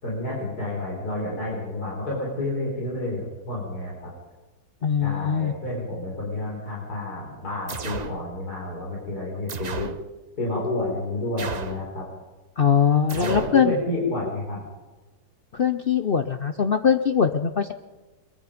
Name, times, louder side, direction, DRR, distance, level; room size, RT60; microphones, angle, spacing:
voice 1, 0.0-4.1 5.0-9.9 10.4-12.1 13.1-14.6, left 2 dB, 70° left, -4 dB, 5.1 m, -30 dB
voice 2, 4.8-5.5 12.6-13.7 15.5-17.7, left 7 dB, 50° left, 9 dB, 0.7 m, -21 dB
sound 1, 7.7-8.2 9.5-10.0 11.4-11.9 13.1-13.6, right 5 dB, 40° right, 0.6 m, -34 dB
22.5 x 22.5 x 5.2 m, 1.2 s
omnidirectional pair, 1.7 m